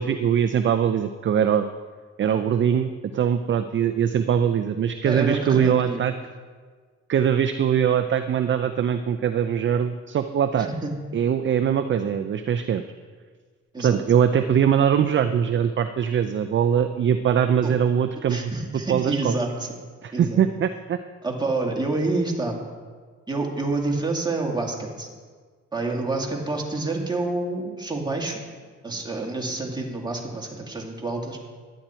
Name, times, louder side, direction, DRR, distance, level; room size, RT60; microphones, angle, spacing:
voice 1, 0.0-1.7 2.2-6.1 7.1-10.7 11.1-12.8 13.8-18.5 18.9-19.4 20.0-21.0, right 8 dB, 40° right, 9 dB, 0.5 m, -22 dB
voice 2, 5.0-6.0 10.6-10.9 13.7-14.0 17.6-17.7 18.3-19.7 20.1-20.4 21.2-22.6 23.3-25.1 25.7-28.4 28.8-31.4, right 2 dB, 15° right, 0 dB, 2.2 m, -28 dB
10.5 x 10.0 x 4.4 m, 1.5 s
cardioid pair, 90°, 30 cm